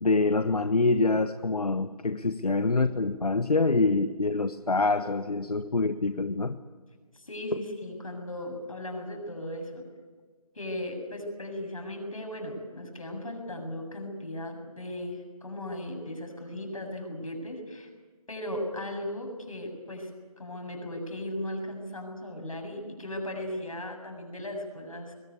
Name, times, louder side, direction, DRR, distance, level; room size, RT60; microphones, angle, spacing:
voice 1, 0.0-6.6 7.5-7.6, left 3 dB, 85° left, 10 dB, 1.2 m, -25 dB
voice 2, 7.1-9.8 10.5-17.9 18.3-20.1 20.4-25.1, left 1 dB, 65° left, 4 dB, 7.6 m, -37 dB
22.0 x 20.0 x 9.6 m, 1.4 s
figure-of-eight pair, 170°, 19 cm